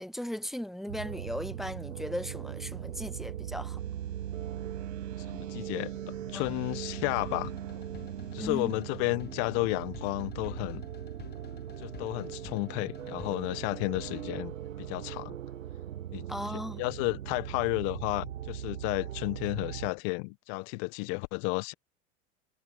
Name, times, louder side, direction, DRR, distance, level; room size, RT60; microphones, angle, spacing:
voice 1, 0.0-3.8 6.3-6.4 8.4-8.7 16.3-16.8, equal, ahead, 0.4 m, -37 dB
sound 1, 0.9-19.9, right 11 dB, 90° right, 0.6 m, -39 dB
sound 2, 3.8-8.7, right 17 dB, 45° right, 7.4 m, -59 dB
voice 2, 5.3-7.5 8.3-10.8 11.8-14.5 14.8-15.3 16.1-16.3 16.5-21.7, left 31 dB, 55° left, 1.6 m, -32 dB
sound 3, 5.9-14.2, left 9 dB, 25° left, 1.2 m, -50 dB
hypercardioid pair, 85°, 38 cm